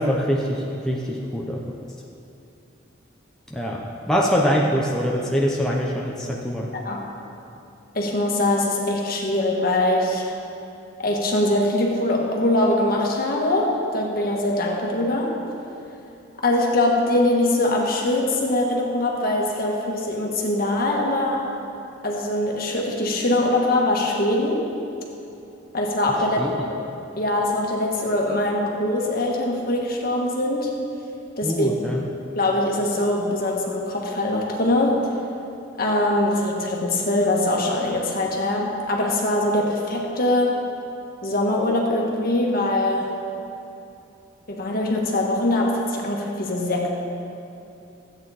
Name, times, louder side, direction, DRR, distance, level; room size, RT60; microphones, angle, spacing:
voice 1, 0.0-1.6 3.5-6.7 26.4-26.5 31.4-32.0, equal, 5° left, -3 dB, 0.7 m, -23 dB
voice 2, 6.7-7.0 7.9-10.3 11.0-15.3 16.4-21.4 22.0-24.7 25.7-26.8 27.2-30.8 31.4-31.7 32.3-35.0 35.8-40.6 41.2-43.1 44.5-46.9, left 1 dB, 45° left, -1 dB, 1.5 m, -22 dB
14.0 x 8.8 x 4.2 m, 2.7 s
head